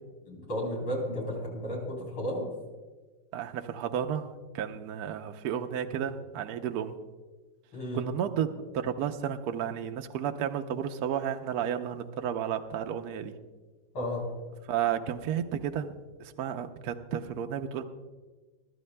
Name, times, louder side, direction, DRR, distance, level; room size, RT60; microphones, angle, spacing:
voice 1, 0.3-2.5 7.7-8.0 13.9-14.2, equal, 90° left, -3 dB, 4.4 m, -33 dB
voice 2, 3.3-4.3 4.5-6.9 7.9-8.5 8.7-13.3 14.7-15.9 16.2-17.8, right 9 dB, 65° right, 5 dB, 1.0 m, -32 dB
23.5 x 12.0 x 2.2 m, 1.3 s
omnidirectional pair, 2.2 m